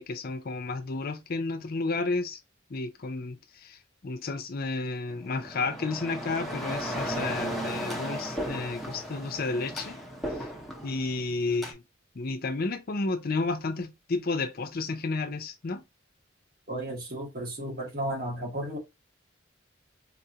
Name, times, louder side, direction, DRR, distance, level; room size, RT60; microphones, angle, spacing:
voice 1, 0.0-2.4 2.7-3.8 4.0-10.0 10.8-11.8 12.2-15.8, left 3 dB, 50° left, 0.5 m, -31 dB
sound 1, 5.1-11.7, equal, ahead, 0.9 m, -35 dB
voice 2, 16.7-18.8, right 1 dB, 50° right, 1.7 m, -34 dB
4.0 x 2.5 x 2.8 m
head